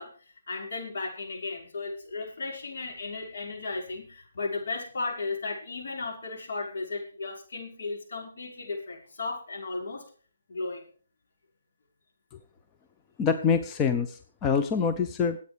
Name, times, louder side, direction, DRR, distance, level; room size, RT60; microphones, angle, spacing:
voice 1, 0.0-10.1 10.5-10.8, left 3 dB, 60° left, 1 dB, 5.6 m, -35 dB
voice 2, 13.2-15.4, left 6 dB, 15° left, 6 dB, 0.7 m, -25 dB
23.5 x 8.6 x 3.5 m, 0.41 s
hypercardioid pair, 155°, 0 cm